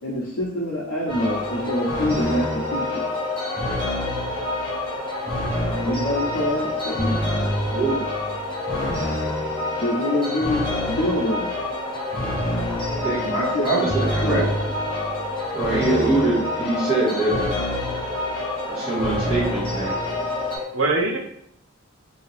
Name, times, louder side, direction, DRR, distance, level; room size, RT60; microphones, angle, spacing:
voice 1, 0.0-3.0 5.8-7.2 9.8-11.5 13.4-13.9 14.2-14.5, left 1 dB, 80° left, -6 dB, 0.7 m, -25 dB
sound 1, 1.1-20.6, left 1 dB, 25° left, 0.8 m, -27 dB
sound 2, 1.2-20.6, left 2 dB, 25° right, 0.4 m, -33 dB
voice 2, 8.5-9.8 20.3-21.2, right 2 dB, 75° right, 1 dB, 0.6 m, -28 dB
voice 3, 12.9-14.4 15.5-17.5 18.7-19.9, right 2 dB, 5° right, -12 dB, 1.4 m, -23 dB
2.7 x 2.7 x 3.2 m, 0.70 s
head